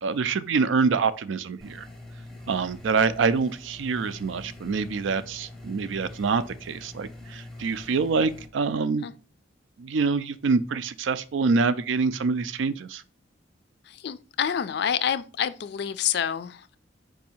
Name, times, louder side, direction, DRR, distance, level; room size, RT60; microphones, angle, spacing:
voice 1, 0.0-1.9 2.5-9.1 9.8-13.0, right 4 dB, 85° right, 0.4 m, -26 dB
sound 1, 1.6-8.5, left 1 dB, ahead, 0.6 m, -44 dB
voice 2, 14.0-16.8, left 8 dB, 60° left, 0.3 m, -27 dB
4.6 x 2.7 x 4.2 m
head